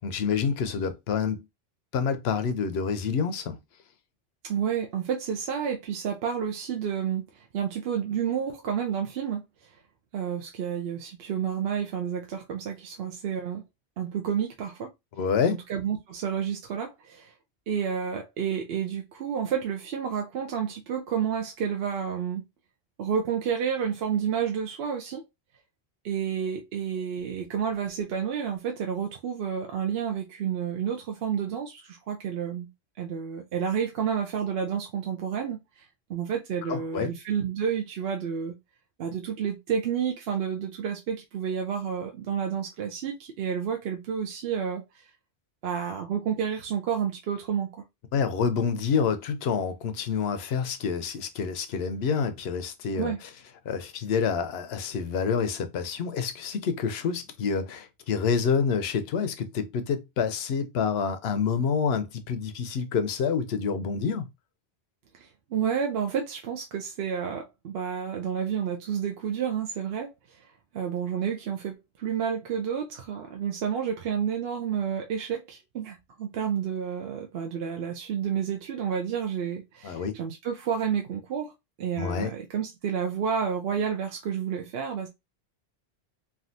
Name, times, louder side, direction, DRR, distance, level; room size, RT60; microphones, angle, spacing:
voice 1, 0.0-1.4 1.9-3.6 15.2-15.6 36.7-37.1 48.1-53.1 53.7-64.3 79.8-80.2 82.0-82.3, left 6 dB, 80° left, 0.8 m, -27 dB
voice 2, 4.4-9.4 10.1-13.6 14.0-14.9 15.5-17.3 17.7-22.4 23.0-25.2 26.0-32.7 33.0-35.8 36.1-38.6 39.0-45.1 45.6-47.7 52.9-53.2 65.1-70.5 70.7-81.5 81.8-85.1, right 7 dB, 70° right, 0.8 m, -30 dB
3.4 x 2.4 x 2.6 m
omnidirectional pair, 1.1 m